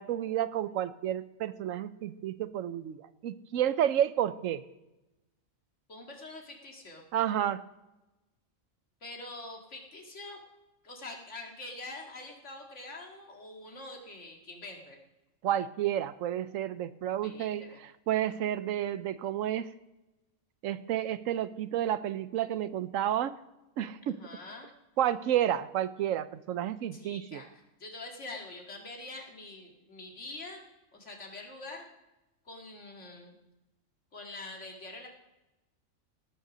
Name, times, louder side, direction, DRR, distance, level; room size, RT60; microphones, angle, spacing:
voice 1, 0.0-3.0 3.2-4.6 7.1-7.6 15.4-17.6 18.1-19.7 20.6-23.3 23.8-24.2 25.0-27.4, right 11 dB, 80° right, 14 dB, 1.0 m, -30 dB
voice 2, 5.9-7.0 9.0-10.4 10.8-15.0 17.2-17.8 24.1-24.7 26.9-30.6 30.9-31.9 32.5-33.3 34.1-35.1, left 2 dB, 60° left, 1 dB, 2.3 m, -45 dB
18.5 x 6.5 x 6.1 m, 0.98 s
omnidirectional pair, 1.4 m